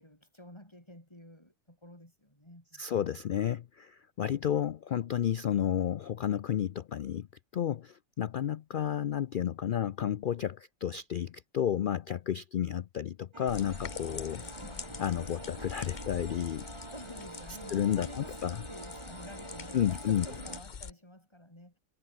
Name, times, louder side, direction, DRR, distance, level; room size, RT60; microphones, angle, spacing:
voice 1, 0.0-2.8 14.4-14.8 16.9-18.4 18.7-21.8, left 1 dB, 20° left, 5.7 m, -50 dB
voice 2, 2.8-7.3 7.5-14.4 15.0-16.7 17.7-18.6 19.7-20.3, left 10 dB, 75° left, 0.4 m, -31 dB
sound 1, 13.3-20.6, right 3 dB, 20° right, 1.4 m, -46 dB
sound 2, 13.5-20.9, left 6 dB, 35° left, 1.0 m, -45 dB
omnidirectional pair, 1.5 m